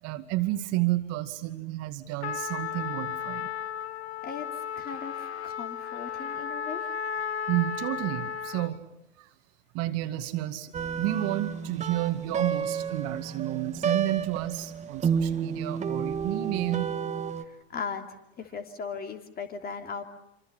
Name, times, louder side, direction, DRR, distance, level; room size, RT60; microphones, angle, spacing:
voice 1, 0.0-3.5 7.5-8.8 9.2-9.3 9.7-10.7 11.0-16.9, right 16 dB, 50° right, 9 dB, 2.2 m, -30 dB
Trumpet, 2.2-8.8, left 7 dB, 85° left, 1.1 m, -34 dB
voice 2, 4.8-6.9 17.4-20.0, left 5 dB, 30° left, 7 dB, 3.0 m, -38 dB
sound 1, 10.7-17.4, right 6 dB, 20° right, 1.7 m, -31 dB
26.5 x 25.5 x 8.2 m, 0.83 s
hypercardioid pair, 95°, 32 cm